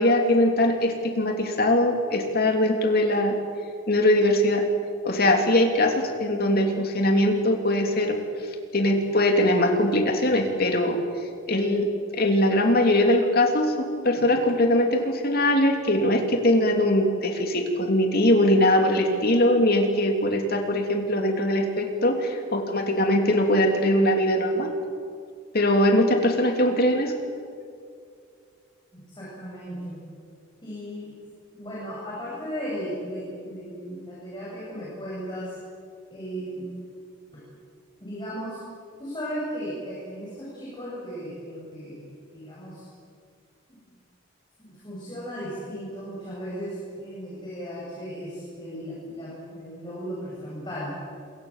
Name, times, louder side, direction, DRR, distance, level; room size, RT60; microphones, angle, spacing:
voice 1, 0.0-3.4 3.9-4.7 5.0-8.2 8.7-11.0 11.5-11.9 12.1-24.7 25.5-27.1, left 1 dB, 45° left, 4 dB, 3.2 m, -21 dB
voice 2, 28.9-30.0 30.6-31.1 31.5-35.6 36.1-36.7 37.3-37.4 38.0-38.6 39.0-42.9 43.7-43.9 44.6-50.9, equal, 20° left, -7 dB, 7.8 m, -36 dB
27.5 x 23.5 x 7.5 m, 2.3 s
head